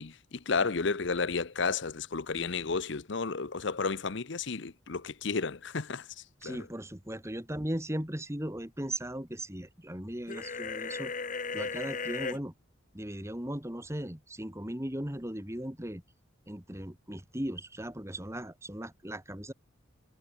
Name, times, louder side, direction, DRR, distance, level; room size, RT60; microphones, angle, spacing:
voice 1, 0.0-6.0 6.4-6.6, left 4 dB, 60° left, 0.8 m, -32 dB
voice 2, 6.4-12.5 12.9-16.0 16.5-19.5, right 1 dB, 15° right, 2.3 m, -38 dB
sound 1, 10.3-12.4, left 4 dB, 40° left, 1.6 m, -36 dB
head